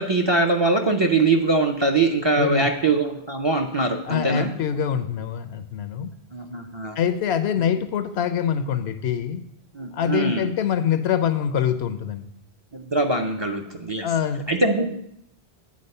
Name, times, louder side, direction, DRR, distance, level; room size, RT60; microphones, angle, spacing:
voice 1, 0.0-4.5 6.3-7.0 9.7-10.5 12.7-14.1 14.5-14.9, right 3 dB, 40° right, 3 dB, 0.4 m, -22 dB
voice 2, 2.4-2.7 4.0-6.1 7.0-9.4 9.9-12.3 14.0-14.4, left 8 dB, 85° left, 10 dB, 0.9 m, -24 dB
8.6 x 4.2 x 5.3 m, 0.77 s
omnidirectional pair, 1.1 m